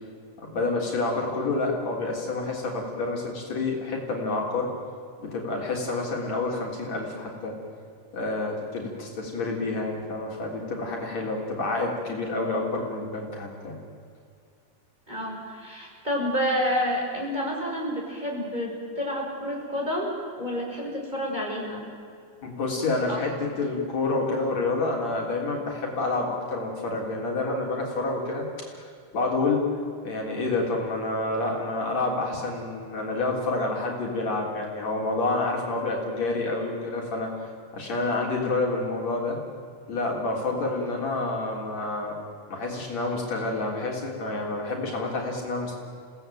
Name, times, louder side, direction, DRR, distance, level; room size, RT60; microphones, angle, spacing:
voice 1, 0.4-4.7 5.2-7.6 8.1-13.8 22.4-29.7 30.0-37.3 37.7-39.4 39.9-42.2 42.5-45.8, left 2 dB, 55° left, -1 dB, 4.7 m, -28 dB
voice 2, 15.1-20.1 20.4-21.8 23.1-23.2 40.9-41.0, equal, 15° right, -2 dB, 5.8 m, -29 dB
29.5 x 18.0 x 9.2 m, 2.3 s
omnidirectional pair, 3.6 m